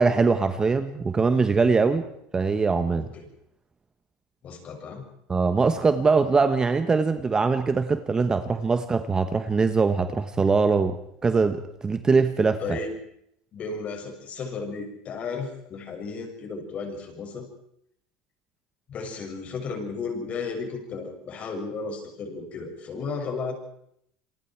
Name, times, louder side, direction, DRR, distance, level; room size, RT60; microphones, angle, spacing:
voice 1, 0.0-2.0 2.3-3.1 5.3-11.0 11.2-12.8, right 4 dB, 20° right, 9 dB, 1.2 m, -22 dB
voice 2, 2.9-3.2 4.4-5.1 12.6-12.9 13.5-17.5 18.9-23.6, left 4 dB, 35° left, 3 dB, 6.7 m, -34 dB
28.5 x 23.5 x 4.7 m, 0.74 s
supercardioid pair, 125°, 4 cm